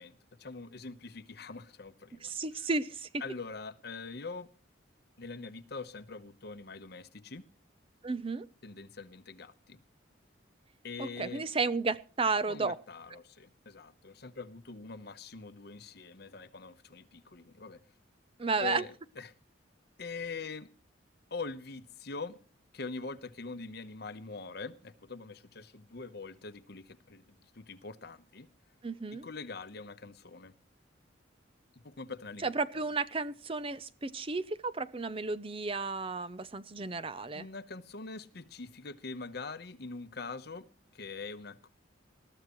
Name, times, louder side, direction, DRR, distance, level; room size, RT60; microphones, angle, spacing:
voice 1, 0.0-2.3 2.6-2.7 3.2-4.5 5.2-7.4 8.6-9.8 10.8-11.5 12.5-17.8 18.6-19.3 20.0-20.7 21.3-22.4 22.7-28.5 29.1-30.5 31.7-32.9 37.3-40.7 40.9-41.7, left 4 dB, 55° left, 1.0 m, -43 dB
voice 2, 2.2-3.1 8.0-8.5 11.0-12.8 18.4-18.8 28.8-29.2 32.4-37.5, right 4 dB, 30° right, 0.6 m, -33 dB
20.0 x 13.5 x 3.1 m
head